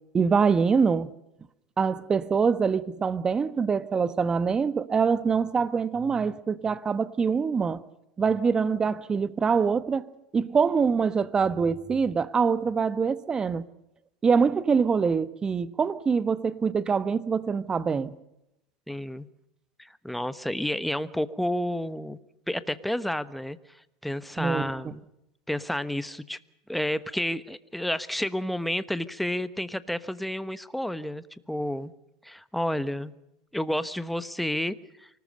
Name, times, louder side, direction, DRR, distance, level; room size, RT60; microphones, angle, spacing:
voice 1, 0.1-1.1 1.8-7.8 8.2-13.6 14.2-18.1 24.4-24.9, right 5 dB, 25° right, 1.3 m, -24 dB
voice 2, 18.9-19.3 19.8-22.2 22.5-23.6 24.0-25.0 25.5-26.4 26.7-31.9 32.2-33.1 33.5-35.1, left 1 dB, ahead, 1.2 m, -30 dB
25.0 x 19.5 x 6.6 m
supercardioid pair, 110°, 3 cm